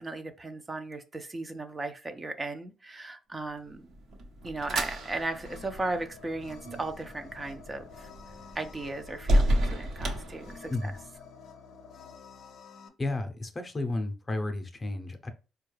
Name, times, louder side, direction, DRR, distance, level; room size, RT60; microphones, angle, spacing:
voice 1, 0.0-3.9 4.4-8.1 8.5-10.9, right 2 dB, 25° right, 0.5 m, -36 dB
sound 1, 3.7-11.0, equal, 75° right, 0.9 m, -32 dB
sound 2, 4.9-12.9, left 5 dB, 75° left, 0.5 m, -50 dB
voice 2, 13.0-15.3, left 2 dB, 25° left, 0.6 m, -32 dB
4.3 x 2.3 x 3.2 m
cardioid pair, 90°, 0 cm